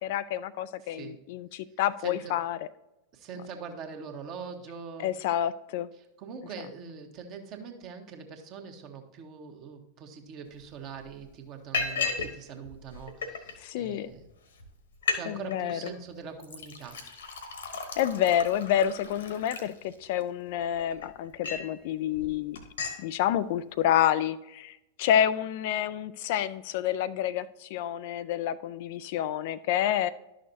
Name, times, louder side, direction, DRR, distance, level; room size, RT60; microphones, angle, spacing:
voice 1, 0.0-2.6 5.0-5.9 13.6-14.1 15.3-15.8 18.0-22.6 23.0-30.1, left 10 dB, 50° left, 15 dB, 0.3 m, -28 dB
voice 2, 0.8-1.2 2.0-2.4 3.1-5.1 6.2-14.2 15.1-17.0, right 6 dB, 40° right, 5 dB, 1.2 m, -43 dB
Liquid, 10.6-10.7 11.0-11.3 11.7-12.3 12.6-13.5 14.2-14.3 14.6-14.7 14.9-15.2 15.5-15.9 16.4-20.2 20.7-21.7 22.1-22.3 22.6-23.0, left 5 dB, 65° left, 1.2 m, -34 dB
11.5 x 6.4 x 2.7 m, 0.91 s
figure-of-eight pair, 90°, 0 cm